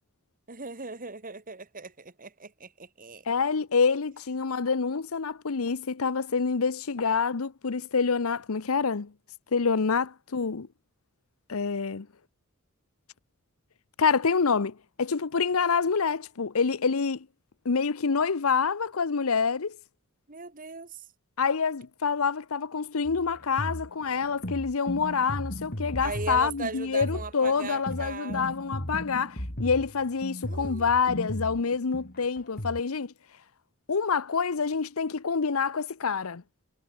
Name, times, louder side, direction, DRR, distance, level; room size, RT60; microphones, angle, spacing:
voice 1, 0.5-3.2 20.3-21.0 26.0-28.5 30.5-30.9, right 4 dB, 40° right, 2.5 m, -38 dB
voice 2, 3.3-9.1 9.5-10.7 11.5-12.1 14.0-17.3 17.6-19.8 21.4-33.1 33.9-36.4, left 5 dB, 80° left, 0.8 m, -27 dB
sound 1, 23.1-32.8, equal, 45° left, 4.2 m, -36 dB
head